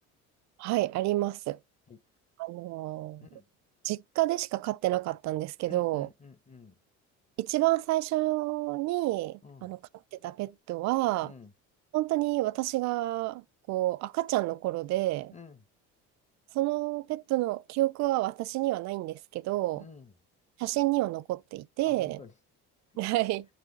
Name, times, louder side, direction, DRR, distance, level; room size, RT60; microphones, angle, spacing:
voice 1, 0.6-1.6 2.4-3.2 3.8-6.1 7.4-9.8 10.2-11.3 11.9-15.3 16.5-19.8 20.6-22.2 23.0-23.5, right 17 dB, 60° right, 0.4 m, -29 dB
voice 2, 5.6-6.8 9.4-9.7 11.2-11.5 15.3-15.6 19.7-20.1 21.9-22.3, left 4 dB, 25° left, 1.0 m, -50 dB
9.2 x 3.6 x 3.9 m
cardioid pair, 110°, 31 cm